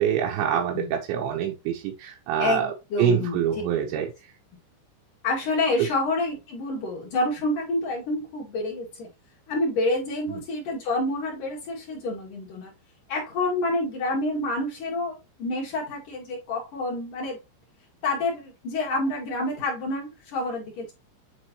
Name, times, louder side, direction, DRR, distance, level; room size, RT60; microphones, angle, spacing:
voice 1, 0.0-2.7 3.0-4.1 5.8-5.9 10.3-10.4, right 9 dB, 80° right, 0 dB, 2.8 m, -25 dB
voice 2, 2.4-3.4 5.2-9.1 9.5-12.7 13.1-17.4 18.0-20.9, left 2 dB, 50° left, -4 dB, 2.8 m, -28 dB
9.4 x 3.7 x 3.0 m, 0.26 s
omnidirectional pair, 6.0 m